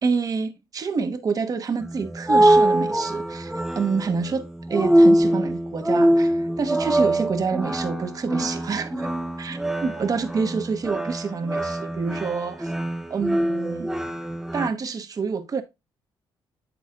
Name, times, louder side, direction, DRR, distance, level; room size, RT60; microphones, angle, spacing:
voice 1, 0.0-9.1 9.4-12.7 13.1-13.9 14.5-15.6, right 5 dB, 45° right, 1.1 m, -27 dB
sound 1, 1.8-14.7, right 1 dB, 5° right, 0.7 m, -23 dB
8.2 x 6.3 x 2.4 m
cardioid pair, 105°, 9 cm